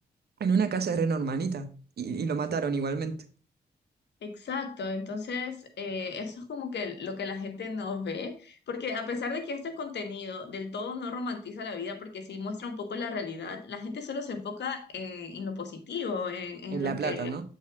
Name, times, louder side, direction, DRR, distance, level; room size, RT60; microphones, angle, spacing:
voice 1, 0.4-3.2 16.7-17.4, right 5 dB, 65° right, 0.9 m, -29 dB
voice 2, 4.2-17.3, left 4 dB, 80° left, 1.4 m, -35 dB
7.5 x 4.0 x 4.6 m
cardioid pair, 75°, 18 cm